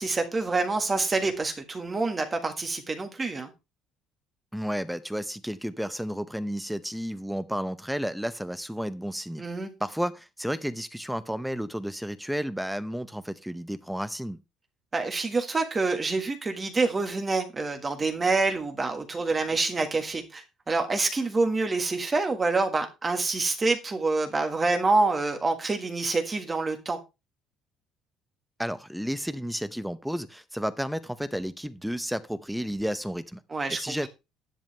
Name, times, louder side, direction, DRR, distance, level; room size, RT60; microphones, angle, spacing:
voice 1, 0.0-3.5 9.4-9.7 14.9-27.0 33.5-33.9, right 3 dB, 15° right, 1.6 m, -27 dB
voice 2, 4.5-9.4 9.8-14.4 28.6-33.4 33.7-34.1, equal, ahead, 0.6 m, -32 dB
10.5 x 10.5 x 3.3 m
cardioid pair, 175°, 0 cm